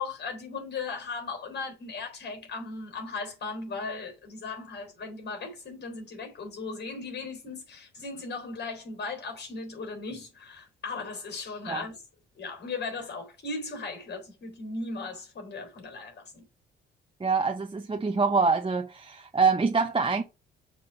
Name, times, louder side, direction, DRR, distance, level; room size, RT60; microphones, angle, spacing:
voice 1, 0.0-12.0 12.4-16.4, left 4 dB, 55° left, 3.9 m, -37 dB
voice 2, 17.2-20.2, right 4 dB, 25° right, 0.9 m, -25 dB
6.9 x 3.7 x 5.9 m
supercardioid pair, 65°, 21 cm